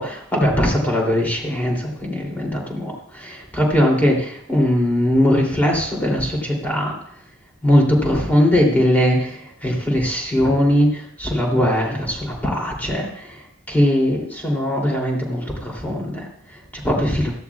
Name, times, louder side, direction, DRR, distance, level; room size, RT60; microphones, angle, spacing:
voice 1, 0.0-7.0 7.6-17.3, equal, 10° left, -2 dB, 2.9 m, -20 dB
16.5 x 14.0 x 2.4 m, 0.69 s
head